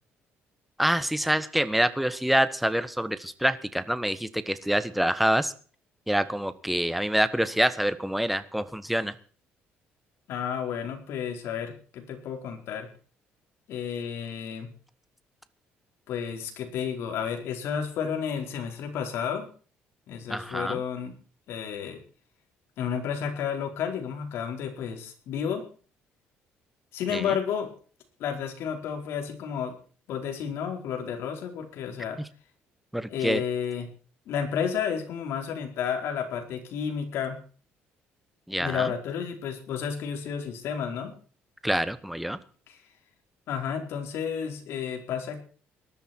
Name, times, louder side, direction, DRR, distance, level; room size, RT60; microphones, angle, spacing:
voice 1, 0.8-5.5 6.1-9.1 20.3-20.8 27.1-27.4 32.2-32.3 32.9-33.4 38.5-38.9 41.6-42.4, equal, ahead, 13 dB, 1.2 m, -26 dB
voice 2, 10.3-12.9 13.7-14.7 16.1-19.5 20.1-21.1 21.5-22.0 22.8-25.6 26.9-27.7 28.2-29.8 30.1-32.2 33.1-33.9 34.3-37.4 38.6-41.1 42.7-42.8 43.5-45.4, left 7 dB, 70° left, 3 dB, 4.6 m, -31 dB
19.0 x 12.5 x 4.5 m, 0.40 s
cardioid pair, 135°, 4 cm